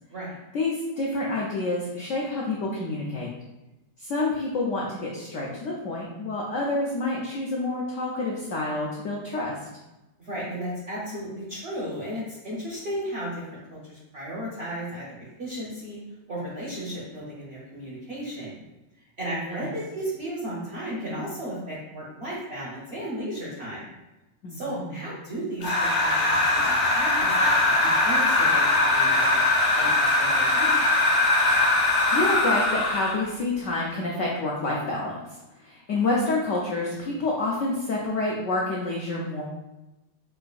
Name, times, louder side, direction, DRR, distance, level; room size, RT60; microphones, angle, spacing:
voice 1, 0.5-3.3 4.0-9.5 19.5-19.7 24.4-25.0 31.7-39.4, left 2 dB, 80° left, -3 dB, 0.6 m, -28 dB
voice 2, 10.2-16.0 16.3-18.6 19.2-23.9 24.5-28.6 28.9-29.4 29.8-30.9, right 1 dB, 60° right, -6 dB, 0.7 m, -34 dB
sound 1, 25.6-33.2, left 2 dB, 55° left, 0.9 m, -21 dB
4.6 x 2.5 x 2.3 m, 1.0 s
omnidirectional pair, 1.9 m